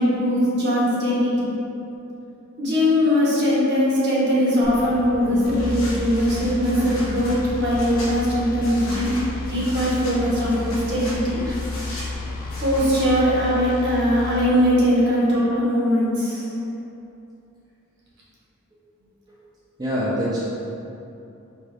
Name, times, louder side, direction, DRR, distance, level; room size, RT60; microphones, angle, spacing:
voice 1, 0.0-1.5 2.6-9.1 9.4-11.4 12.6-16.5, equal, 55° right, -7 dB, 1.0 m, -20 dB
sound 1, 4.6-13.2, equal, 65° left, 1.1 m, -36 dB
sound 2, 5.5-14.5, left 3 dB, 45° left, 0.4 m, -32 dB
voice 2, 19.8-20.4, equal, 20° right, -9 dB, 0.5 m, -25 dB
4.7 x 2.5 x 3.1 m, 2.8 s
head